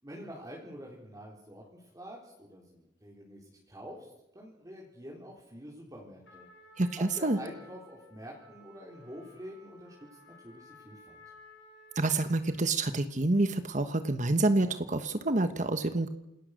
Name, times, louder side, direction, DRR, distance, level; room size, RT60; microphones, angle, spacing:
voice 1, 0.0-6.5 7.0-11.2, equal, 20° right, -3 dB, 4.0 m, -47 dB
Trumpet, 6.2-12.8, left 1 dB, 75° left, 6.4 m, -56 dB
voice 2, 6.8-7.4 12.0-16.1, right 2 dB, 45° right, 9 dB, 1.2 m, -28 dB
28.5 x 20.0 x 6.6 m, 0.87 s
head